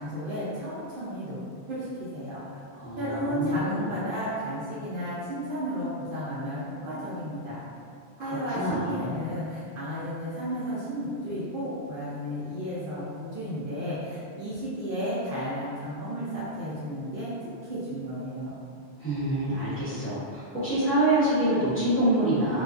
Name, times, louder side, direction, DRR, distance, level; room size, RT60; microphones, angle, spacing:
voice 1, 0.0-1.4 1.7-1.9 2.1-2.6 3.0-7.6 8.2-18.5, equal, 60° right, -10 dB, 0.7 m, -33 dB
voice 2, 2.7-3.9 8.2-9.1 19.0-22.6, right 1 dB, 15° left, -15 dB, 0.9 m, -26 dB
2.4 x 2.2 x 2.3 m, 2.4 s
omnidirectional pair, 1.1 m